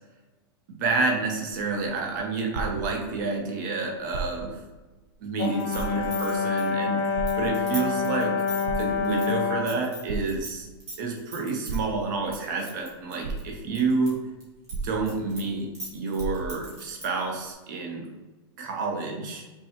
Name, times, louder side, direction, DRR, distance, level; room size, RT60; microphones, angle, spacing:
voice 1, 0.8-4.6 5.2-10.7 11.0-14.2 14.8-18.1 18.6-19.4, right 3 dB, 45° right, 1 dB, 0.8 m, -29 dB
sound 1, 1.6-3.4 4.0-4.7 5.1-5.2 5.7-6.4 7.2-8.0 8.5-9.3 10.1-10.8 11.7-12.4 12.9-13.0 13.2-13.9 14.7-15.5 15.8-15.9 16.2-16.8 17.5-17.6, right 4 dB, 75° right, 0.5 m, -35 dB
Brass instrument, 5.4-9.8, left 5 dB, 35° left, 0.4 m, -27 dB
sound 2, 5.4-10.5 10.8-11.8 12.3-14.1 14.4-17.2, equal, 20° right, 1.2 m, -40 dB
5.4 x 2.3 x 2.9 m, 1.2 s
supercardioid pair, 180°, 14 cm